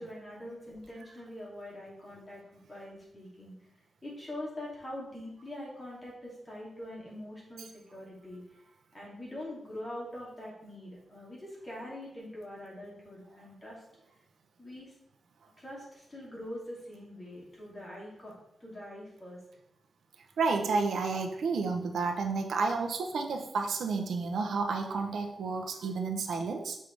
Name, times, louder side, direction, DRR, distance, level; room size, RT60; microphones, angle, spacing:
voice 1, 0.0-3.5 4.0-8.4 8.9-13.8 14.6-14.9 15.6-18.3 18.6-19.4, left 1 dB, 20° left, -5 dB, 2.6 m, -43 dB
voice 2, 20.4-26.8, right 4 dB, 85° right, 4 dB, 0.8 m, -31 dB
6.5 x 5.4 x 3.4 m, 0.80 s
wide cardioid pair, 135°, 0 cm